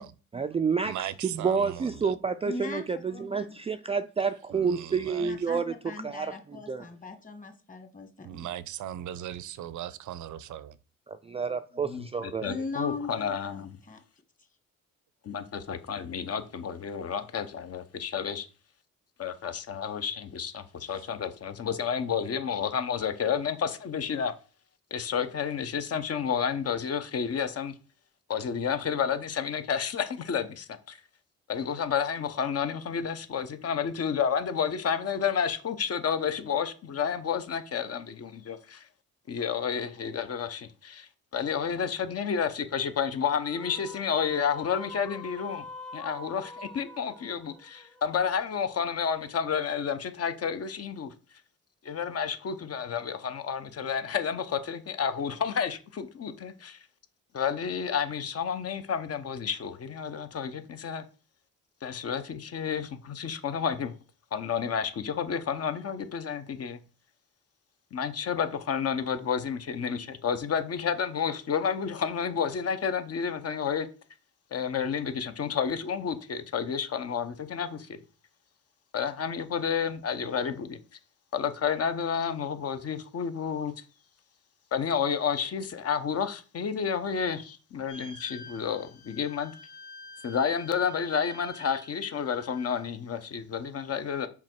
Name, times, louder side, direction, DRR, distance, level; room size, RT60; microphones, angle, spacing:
voice 1, 0.3-1.0 1.2-5.7 6.0-6.3 6.7-6.8 11.3-12.5, right 5 dB, 20° right, 0.3 m, -29 dB
voice 2, 0.8-2.2 4.5-5.3 8.2-10.7, right 11 dB, 75° right, 0.6 m, -38 dB
voice 3, 2.4-3.6 5.2-8.5 12.4-14.0, left 3 dB, 25° left, 1.6 m, -39 dB
voice 4, 11.8-13.8 15.2-18.5 19.2-24.3 24.9-27.7 28.3-31.0 31.5-38.8 39.3-45.7 45.9-51.1 51.8-56.8 57.3-61.0 61.8-63.9 64.3-66.8 67.9-73.9 74.5-78.0 78.9-80.8 81.3-83.7 84.7-89.5 90.2-94.3, left 7 dB, 55° left, 1.0 m, -30 dB
sound 1, 43.2-48.7, left 2 dB, ahead, 0.8 m, -45 dB
sound 2, 87.9-92.9, left 3 dB, 80° left, 1.9 m, -48 dB
5.8 x 4.9 x 4.5 m
cardioid pair, 100°, 30 cm